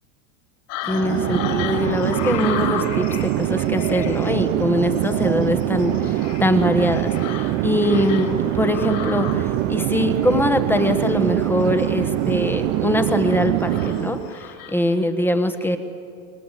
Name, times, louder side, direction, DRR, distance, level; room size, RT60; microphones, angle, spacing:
sound 1, 0.7-14.9, left 7 dB, 50° left, 4.3 m, -34 dB
voice 1, 0.9-7.4 7.6-8.3 8.6-15.8, left 1 dB, 5° left, 8 dB, 1.3 m, -22 dB
Chatter / Fixed-wing aircraft airplane, 0.9-14.3, right 16 dB, 45° right, 0.7 m, -23 dB
27.0 x 22.5 x 9.1 m, 2.5 s
supercardioid pair, 150°, 42 cm